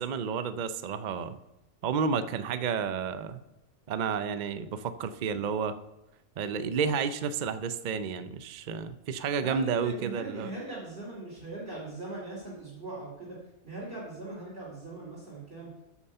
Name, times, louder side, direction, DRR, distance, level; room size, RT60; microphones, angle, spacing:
voice 1, 0.0-1.4 1.8-3.4 3.9-5.8 6.4-10.5, right 6 dB, 70° right, 12 dB, 0.4 m, -31 dB
voice 2, 9.4-13.4 13.6-15.7, right 2 dB, 40° right, -7 dB, 2.8 m, -40 dB
8.5 x 7.1 x 6.6 m, 0.94 s
omnidirectional pair, 1.5 m